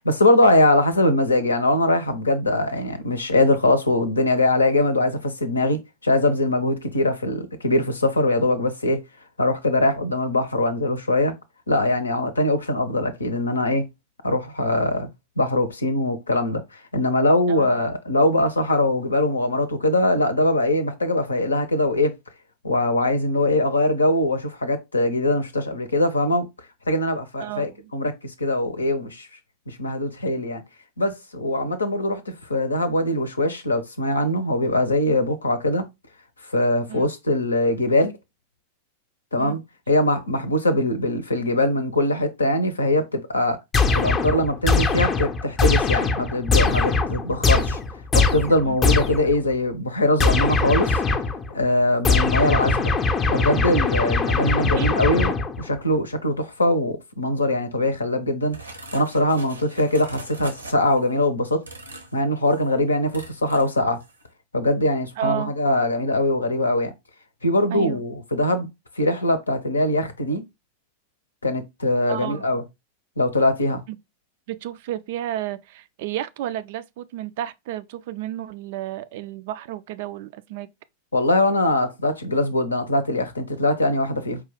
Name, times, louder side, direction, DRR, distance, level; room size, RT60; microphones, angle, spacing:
voice 1, 0.0-9.0 9.4-11.3 11.7-13.8 14.2-15.1 15.4-16.6 16.9-22.1 22.6-26.5 26.9-29.3 29.7-30.6 31.0-35.8 36.5-38.1 39.3-39.6 39.9-43.6 43.9-47.8 48.1-51.0 51.5-52.9 53.3-58.6 58.9-61.6 62.1-64.0 64.5-66.9 67.4-68.7 69.0-70.4 71.4-72.6 73.2-73.8 81.1-84.4, left 1 dB, 75° left, 0.6 m, -22 dB
voice 2, 27.4-27.9 36.9-37.1 39.4-39.6 48.6-48.8 54.7-54.9 65.2-65.6 67.7-68.0 72.1-72.4 73.9-74.0 74.5-80.7, right 12 dB, 50° right, 0.3 m, -32 dB
sound 1, 43.7-49.4 50.2-51.5 52.0-55.7, left 4 dB, 20° left, 0.6 m, -21 dB
sound 2, 58.5-61.1 61.6-62.2 62.5-62.7 63.1-63.8 64.0-64.2, right 2 dB, 80° right, 0.8 m, -41 dB
4.7 x 2.3 x 3.5 m
figure-of-eight pair, 90°, 0 cm